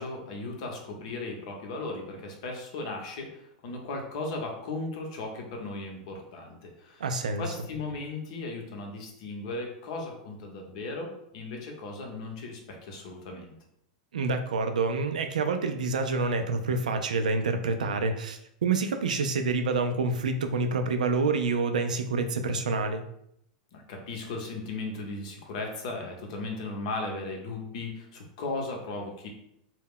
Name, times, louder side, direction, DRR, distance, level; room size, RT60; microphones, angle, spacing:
voice 1, 0.0-7.0 7.4-13.6 23.7-29.3, left 2 dB, 65° left, 1 dB, 0.7 m, -36 dB
voice 2, 7.0-7.5 14.1-23.0, right 3 dB, 85° right, 7 dB, 0.3 m, -27 dB
2.2 x 2.0 x 3.6 m, 0.76 s
hypercardioid pair, 110°, 4 cm